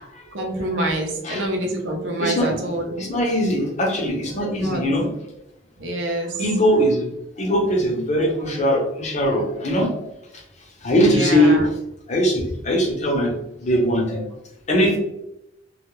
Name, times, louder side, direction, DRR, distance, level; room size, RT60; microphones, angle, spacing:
voice 1, 0.3-3.0 4.3-4.8 5.8-6.4 11.1-11.7, right 1 dB, 70° right, 1 dB, 0.7 m, -26 dB
voice 2, 3.0-5.1 6.4-7.1 7.4-10.0 10.8-11.5 12.1-13.3 13.6-14.2 14.7-15.0, equal, 40° left, -1 dB, 0.7 m, -20 dB
2.3 x 2.0 x 2.9 m, 0.83 s
head